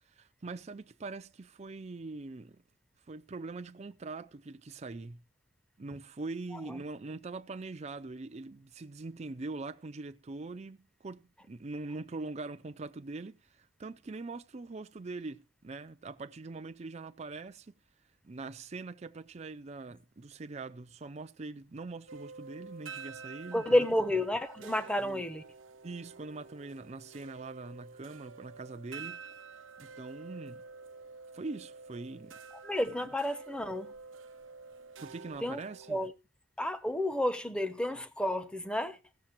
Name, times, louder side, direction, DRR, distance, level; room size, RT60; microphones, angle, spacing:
voice 1, 0.1-2.6 3.1-5.2 5.8-17.7 18.2-23.8 25.0-25.3 25.8-29.2 29.8-30.6 31.3-32.4 35.0-36.0, right 3 dB, 35° right, 0.5 m, -43 dB
sound 1, 22.1-36.1, right 4 dB, 85° right, 0.8 m, -49 dB
voice 2, 23.5-25.4 32.6-33.9 35.4-35.6 35.9-36.1 36.6-39.0, left 1 dB, 5° left, 0.8 m, -30 dB
16.0 x 6.8 x 4.5 m
head